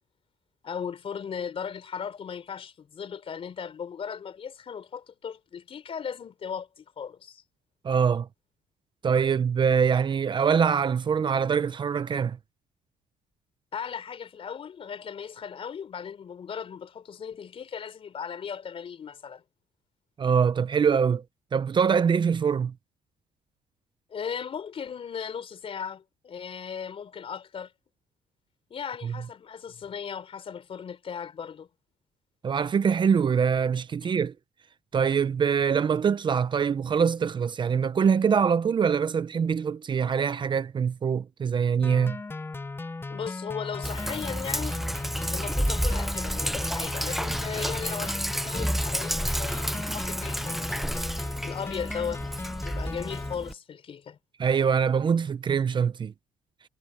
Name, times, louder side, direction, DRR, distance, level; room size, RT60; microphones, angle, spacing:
voice 1, 0.6-7.4 13.7-19.4 24.1-27.7 28.7-31.7 43.1-44.8 45.3-50.8 51.4-52.2 52.6-54.2, left 7 dB, 45° left, 4.1 m, -37 dB
voice 2, 7.8-8.3 9.0-12.4 20.2-21.2 21.5-22.7 29.0-29.1 32.4-34.3 34.9-42.2 54.4-56.1, right 6 dB, 35° right, 0.8 m, -24 dB
sound 1, 41.8-53.3, left 3 dB, 15° left, 0.7 m, -37 dB
Sink (filling or washing), 43.8-53.5, equal, ahead, 1.1 m, -30 dB
cardioid pair, 110°, 13 cm